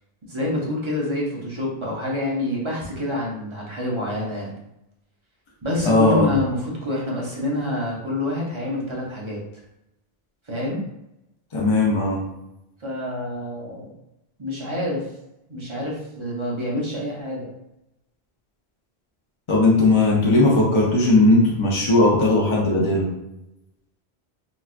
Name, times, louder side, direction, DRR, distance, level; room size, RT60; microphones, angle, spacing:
voice 1, 0.3-4.5 5.6-9.4 10.5-10.8 12.8-13.9 14.4-15.1 15.5-17.5, left 1 dB, 35° right, -4 dB, 0.6 m, -27 dB
voice 2, 5.8-6.3 11.5-12.2 19.5-23.1, left 2 dB, 40° left, -3 dB, 0.5 m, -18 dB
3.9 x 2.3 x 2.4 m, 0.88 s
omnidirectional pair, 1.1 m